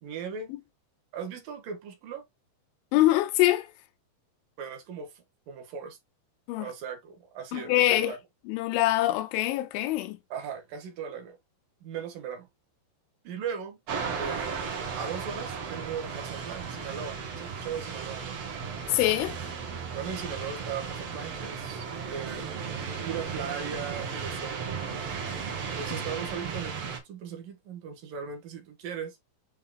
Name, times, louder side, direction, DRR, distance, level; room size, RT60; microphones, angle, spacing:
voice 1, 0.0-0.5 1.1-2.2 4.6-6.0 6.6-8.2 10.3-11.4 11.8-12.5 13.2-13.8 14.1-18.5 19.9-22.5 23.0-25.1 25.7-29.2, right 7 dB, 65° right, 2.4 m, -38 dB
voice 2, 2.9-3.7 6.5-6.7 7.5-8.1 8.5-10.2 18.9-19.4, left 15 dB, 90° left, 3.1 m, -24 dB
sound 1, 13.9-27.0, right 6 dB, 90° right, 1.3 m, -35 dB
7.7 x 5.7 x 2.2 m
omnidirectional pair, 5.5 m